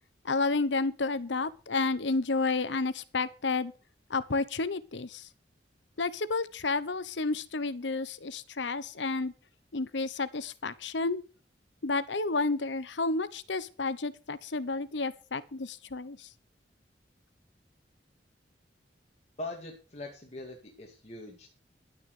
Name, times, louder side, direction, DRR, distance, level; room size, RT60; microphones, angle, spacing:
voice 1, 0.2-3.7 4.1-5.3 6.0-9.3 9.7-11.2 11.8-16.3, left 3 dB, 80° left, 1.0 m, -31 dB
voice 2, 19.4-21.5, left 2 dB, 40° left, 2.5 m, -42 dB
11.5 x 9.6 x 6.6 m
head